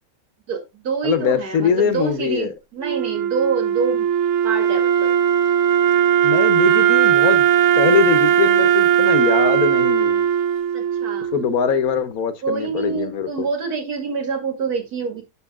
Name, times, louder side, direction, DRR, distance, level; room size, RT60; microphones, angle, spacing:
voice 1, 0.5-4.1 4.4-5.1 10.7-11.3 12.4-15.2, right 5 dB, 80° right, 2.4 m, -26 dB
voice 2, 1.0-2.5 6.2-7.5 7.8-10.3 11.3-13.5, left 7 dB, 70° left, 1.4 m, -22 dB
Wind instrument woodwind instrument, 2.8-11.9, right 9 dB, 65° right, 1.0 m, -18 dB
7.2 x 6.3 x 3.6 m
omnidirectional pair, 1.6 m